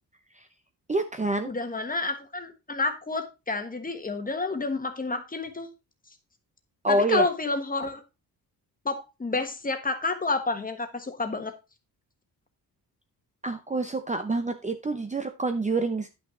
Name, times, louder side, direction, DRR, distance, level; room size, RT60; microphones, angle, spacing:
voice 1, 0.9-1.5 6.8-7.3 13.4-16.1, right 2 dB, 20° right, 7 dB, 0.7 m, -27 dB
voice 2, 1.4-5.7 6.9-8.0 8.8-11.5, left 3 dB, 20° left, 7 dB, 1.4 m, -29 dB
10.5 x 6.1 x 3.7 m, 0.27 s
wide cardioid pair, 135°, 39 cm